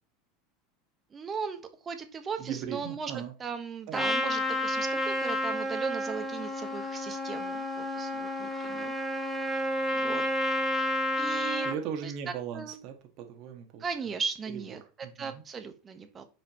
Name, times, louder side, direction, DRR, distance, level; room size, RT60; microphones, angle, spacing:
voice 1, 1.1-8.9 9.9-10.2 11.2-11.7 12.0-12.8 13.8-14.8 15.1-16.2, right 5 dB, 30° right, 8 dB, 1.3 m, -37 dB
voice 2, 2.4-3.3 3.9-4.1 11.6-13.8 14.7-15.4, right 8 dB, 55° right, 5 dB, 1.6 m, -38 dB
Trumpet, 3.9-11.8, left 1 dB, ahead, 1.6 m, -30 dB
8.5 x 5.0 x 3.1 m, 0.35 s
hypercardioid pair, 100°, 0 cm